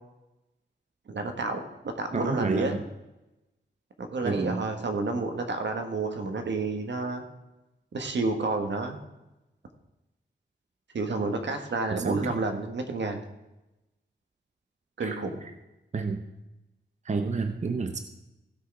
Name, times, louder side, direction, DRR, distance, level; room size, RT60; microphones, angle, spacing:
voice 1, 1.1-2.8 4.0-7.2 7.9-9.0 10.9-13.2 15.0-15.4, right 3 dB, 70° right, 5 dB, 1.7 m, -30 dB
voice 2, 2.1-2.8 4.2-4.6 11.9-12.4 15.0-15.2 15.9-16.2 17.1-18.0, right 4 dB, 40° right, 7 dB, 0.8 m, -29 dB
16.0 x 6.4 x 4.8 m, 0.97 s
wide cardioid pair, 105°, 19 cm